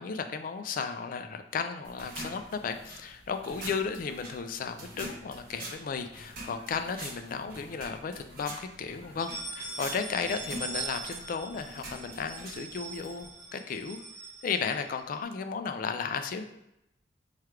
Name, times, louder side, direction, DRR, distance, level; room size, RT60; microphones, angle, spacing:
voice 1, 0.0-14.0 14.4-16.4, left 5 dB, 50° left, 8 dB, 0.3 m, -34 dB
sound 1, 1.8-13.3, right 1 dB, 60° right, 1.0 m, -45 dB
sound 2, 6.5-7.4 7.9-8.0 8.3-8.4 9.0-15.2, right 3 dB, 15° right, 1.0 m, -42 dB
3.2 x 2.4 x 4.4 m, 0.85 s
head